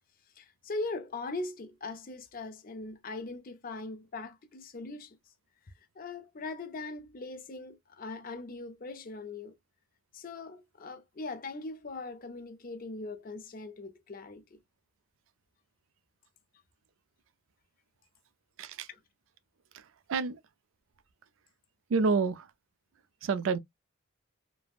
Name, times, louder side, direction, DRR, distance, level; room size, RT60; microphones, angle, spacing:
voice 1, 0.4-5.2 6.0-9.6 10.1-14.6 18.9-19.0, left 3 dB, 40° left, 0.5 m, -40 dB
voice 2, 18.6-18.9 19.7-20.4 21.9-22.5 23.2-23.6, right 4 dB, 60° right, 0.4 m, -29 dB
3.2 x 2.0 x 2.3 m
head